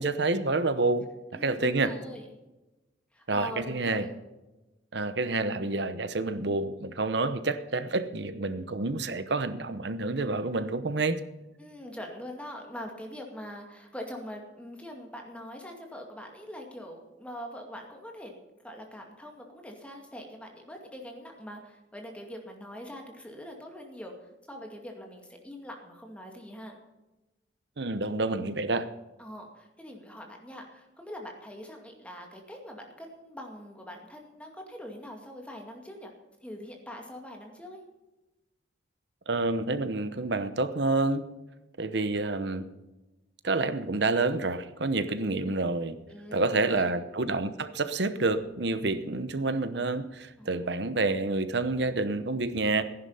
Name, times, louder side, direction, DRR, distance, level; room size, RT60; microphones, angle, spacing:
voice 1, 0.0-1.9 3.3-4.1 4.9-11.2 27.8-28.9 39.3-41.3 41.8-42.7 43.4-46.0 46.3-52.8, right 3 dB, 65° right, 12 dB, 1.0 m, -28 dB
voice 2, 1.3-2.3 3.1-4.1 11.6-18.4 18.6-26.8 29.2-36.1 36.4-37.8 45.3-45.4 46.1-46.9 50.4-50.5, equal, 5° left, 2 dB, 2.2 m, -43 dB
15.0 x 11.0 x 5.6 m, 1.0 s
head